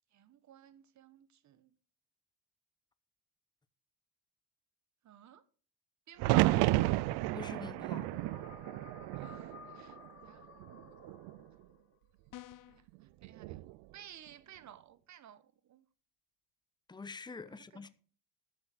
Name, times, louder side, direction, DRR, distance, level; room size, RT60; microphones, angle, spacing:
voice 1, 0.1-1.7 5.0-5.4 6.1-6.6 9.1-10.5 12.7-13.6 13.9-15.8 17.5-17.8, right 10 dB, 45° right, 1.2 m, -55 dB
sound 1, 6.2-10.2 10.6-11.4 13.2-13.7, right 18 dB, 85° right, 0.5 m, -31 dB
voice 2, 7.3-8.1 16.9-17.9, left 4 dB, 10° left, 0.8 m, -45 dB
sound 2, 7.9-12.0, left 8 dB, 40° left, 1.0 m, -56 dB
sound 3, 12.3-12.9, left 15 dB, 55° left, 0.6 m, -50 dB
11.5 x 6.6 x 6.1 m
cardioid pair, 100°, 38 cm